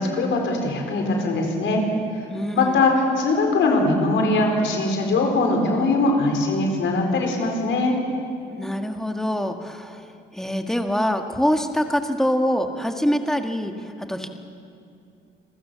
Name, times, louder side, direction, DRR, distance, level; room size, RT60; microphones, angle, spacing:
voice 1, 0.0-1.8 2.5-8.0, left 2 dB, 70° left, 2 dB, 4.5 m, -21 dB
voice 2, 2.3-2.9 8.6-10.0 10.3-13.7 14.1-14.3, equal, ahead, 5 dB, 1.7 m, -24 dB
26.5 x 15.0 x 6.9 m, 2.5 s
cardioid pair, 90°, 20 cm